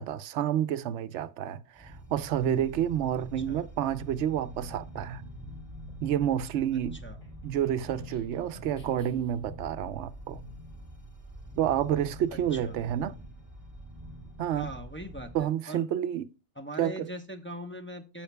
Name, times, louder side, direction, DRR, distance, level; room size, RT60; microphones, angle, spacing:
voice 1, 0.0-5.2 6.0-7.0 7.4-10.4 11.6-13.1 14.4-14.7 15.3-16.3 16.8-17.1, right 10 dB, 90° right, 0.9 m, -29 dB
sound 1, 1.8-15.4, equal, 15° right, 2.0 m, -45 dB
sound 2, 5.9-9.5, left 1 dB, 90° left, 3.5 m, -53 dB
voice 2, 12.3-12.8 14.5-15.8 16.6-18.2, equal, 10° left, 0.7 m, -41 dB
15.0 x 5.7 x 2.2 m
omnidirectional pair, 1.2 m